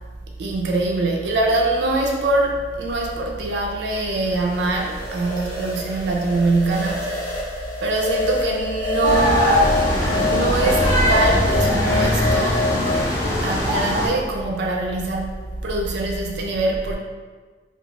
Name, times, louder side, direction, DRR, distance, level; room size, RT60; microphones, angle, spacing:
voice 1, 0.4-7.3 7.8-9.8 10.2-12.7 13.4-15.3 15.6-17.0, right 2 dB, 70° right, 0 dB, 0.3 m, -23 dB
sound 1, 4.0-13.1, left 3 dB, 65° left, 1.0 m, -27 dB
sound 2, 9.0-14.1, equal, 20° left, 0.6 m, -21 dB
2.3 x 2.3 x 2.9 m, 1.4 s
head